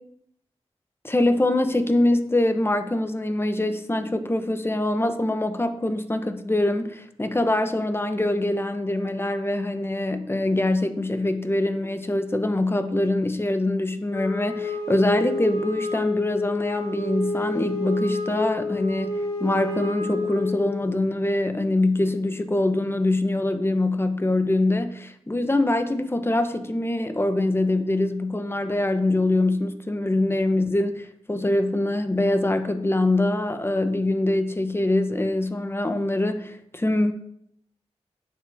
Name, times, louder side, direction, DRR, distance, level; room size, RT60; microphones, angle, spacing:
voice 1, 1.0-37.1, left 2 dB, 20° left, 8 dB, 1.0 m, -24 dB
Wind instrument woodwind instrument, 14.1-20.9, left 2 dB, 40° left, 3.2 m, -29 dB
8.9 x 7.6 x 3.6 m, 0.71 s
cardioid pair, 50°, 11 cm